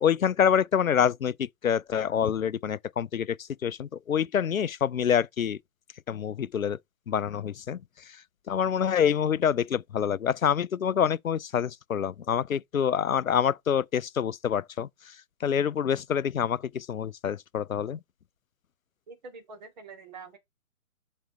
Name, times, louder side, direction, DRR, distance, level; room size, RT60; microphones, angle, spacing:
voice 1, 0.0-3.4 3.6-5.6 6.1-6.8 7.1-7.8 8.5-14.9 15.4-18.0, left 8 dB, 75° left, 0.5 m, -26 dB
voice 2, 19.1-20.4, right 4 dB, 30° right, 2.3 m, -45 dB
6.0 x 4.2 x 4.7 m
figure-of-eight pair, 145°, 42 cm